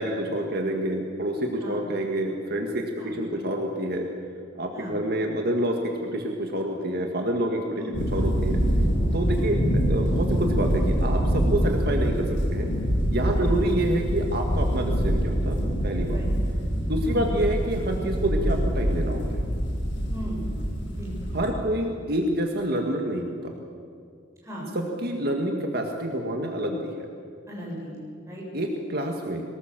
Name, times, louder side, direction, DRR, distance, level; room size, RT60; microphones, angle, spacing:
voice 1, 0.0-4.1 4.6-7.8 8.1-8.6 9.1-12.7 13.1-16.2 16.9-19.4 21.3-23.5 24.7-26.9 28.5-29.4, right 1 dB, 55° right, 2 dB, 1.9 m, -27 dB
sound 1, 7.9-21.5, equal, 90° left, 6.1 m, -25 dB
voice 2, 20.9-21.3 24.4-24.7 27.5-28.4, equal, 15° right, -5 dB, 7.3 m, -38 dB
23.5 x 19.0 x 7.6 m, 2.3 s
head